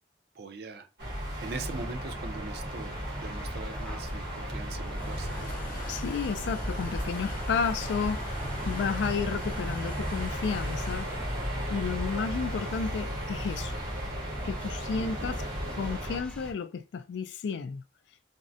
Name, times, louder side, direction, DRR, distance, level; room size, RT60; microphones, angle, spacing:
voice 1, 0.4-0.9 1.4-5.5 15.0-15.5, right 3 dB, 60° right, 0.5 m, -42 dB
sound 1, 1.0-16.2, equal, 75° right, 1.4 m, -35 dB
sound 2, 1.6-16.5, equal, 5° left, 0.5 m, -43 dB
sound 3, 3.9-15.2, left 1 dB, 50° left, 0.8 m, -43 dB
voice 2, 5.9-8.2 8.6-11.1 11.7-13.7 14.4-15.4 15.8-17.8, left 5 dB, 80° left, 0.3 m, -32 dB
3.5 x 2.1 x 2.6 m
head